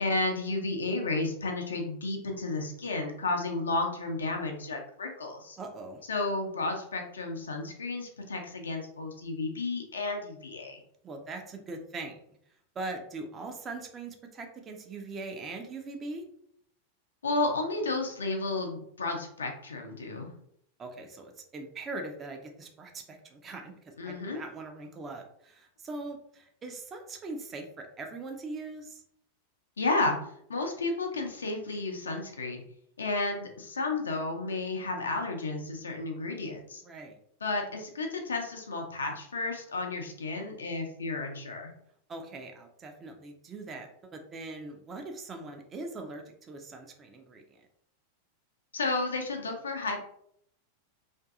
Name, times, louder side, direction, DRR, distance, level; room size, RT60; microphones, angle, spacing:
voice 1, 0.0-5.6 6.1-10.8 17.2-20.3 24.0-24.4 29.8-30.2 30.5-32.6 33.0-36.8 37.4-41.7 48.7-50.0, left 3 dB, 70° left, 3 dB, 0.5 m, -32 dB
voice 2, 5.6-6.0 11.0-12.2 12.8-16.2 20.8-23.7 24.0-29.0 36.8-37.2 42.1-47.6, right 3 dB, 25° right, 4 dB, 0.4 m, -41 dB
2.5 x 2.5 x 2.3 m, 0.70 s
figure-of-eight pair, 90°, 0 cm